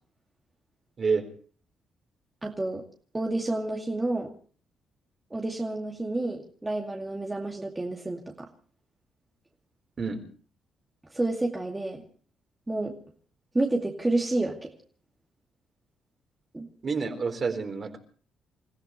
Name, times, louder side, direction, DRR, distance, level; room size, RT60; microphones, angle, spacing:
voice 1, 2.4-2.8 3.1-4.3 5.3-8.5 11.1-12.0 12.7-13.0 13.5-14.7 16.5-16.7, right 2 dB, 15° right, 0 dB, 2.3 m, -29 dB
voice 2, 16.8-18.0, right 5 dB, 40° right, 5 dB, 4.2 m, -28 dB
28.5 x 15.5 x 3.2 m, 0.43 s
cardioid pair, 90°, 0 cm